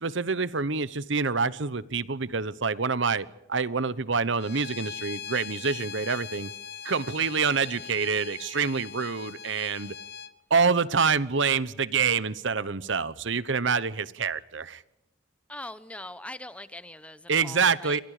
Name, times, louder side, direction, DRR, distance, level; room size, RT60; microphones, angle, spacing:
voice 1, 0.0-6.5 6.8-9.9 10.5-14.8 17.3-18.0, right 5 dB, 70° right, 1.0 m, -26 dB
Bowed string instrument, 4.4-10.3, left 7 dB, 55° left, 1.0 m, -41 dB
voice 2, 15.5-18.0, left 1 dB, 5° left, 0.9 m, -41 dB
28.5 x 24.5 x 5.0 m
head